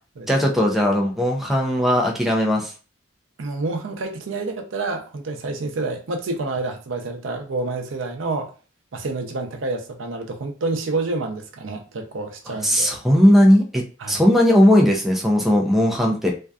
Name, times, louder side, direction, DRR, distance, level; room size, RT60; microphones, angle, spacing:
voice 1, 0.3-2.7 12.6-13.8 14.1-16.3, equal, ahead, 0.4 m, -17 dB
voice 2, 3.4-8.5 8.9-13.0 14.0-14.2, right 3 dB, 80° right, 0.5 m, -28 dB
2.5 x 2.3 x 2.3 m
head